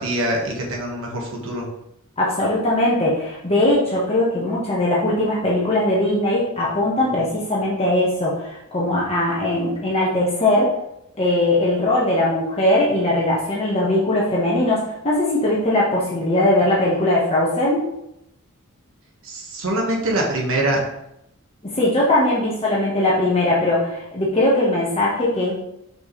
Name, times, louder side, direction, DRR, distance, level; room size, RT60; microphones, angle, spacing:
voice 1, 0.0-1.7 19.2-20.8, right 1 dB, 65° right, -1 dB, 1.5 m, -24 dB
voice 2, 2.2-10.7 11.2-17.8 21.6-25.5, left 1 dB, 25° left, -5 dB, 1.2 m, -20 dB
6.2 x 5.1 x 3.2 m, 0.81 s
head